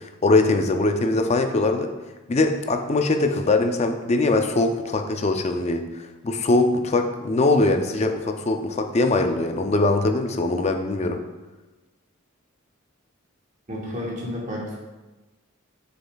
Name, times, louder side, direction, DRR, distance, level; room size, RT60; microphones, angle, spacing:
voice 1, 0.0-1.9 2.3-11.2, left 2 dB, 30° left, 6 dB, 0.5 m, -22 dB
voice 2, 13.7-14.8, left 1 dB, 35° right, -3 dB, 1.4 m, -31 dB
7.0 x 6.7 x 2.3 m, 1.2 s
head